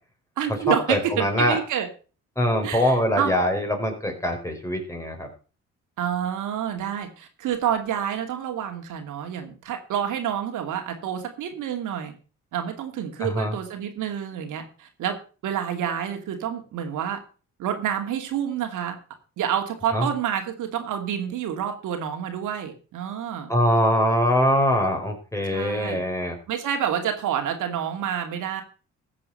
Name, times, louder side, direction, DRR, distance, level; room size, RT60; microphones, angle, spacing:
voice 1, 0.4-1.9 2.6-3.3 6.0-12.1 12.5-15.2 15.4-17.2 17.6-18.9 19.4-23.5 25.5-26.0 26.5-28.6, right 9 dB, 85° right, 5 dB, 2.5 m, -28 dB
voice 2, 0.9-1.6 2.4-5.3 13.2-13.5 19.9-20.1 23.5-26.4, equal, 10° left, 3 dB, 4.3 m, -23 dB
14.5 x 7.6 x 5.6 m, 0.36 s
cardioid pair, 90°, 30 cm